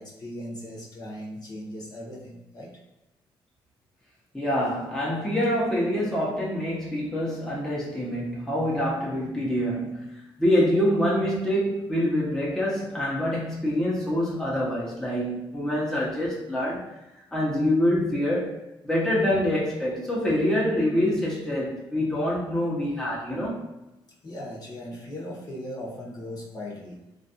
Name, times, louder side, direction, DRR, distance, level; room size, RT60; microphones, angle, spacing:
voice 1, 0.0-2.8 24.2-27.0, left 1 dB, 45° left, 1.1 m, -38 dB
voice 2, 4.3-10.0 10.4-16.9 17.1-23.6, left 1 dB, 5° left, 0.9 m, -26 dB
3.1 x 2.5 x 2.8 m
cardioid pair, 90°, 9 cm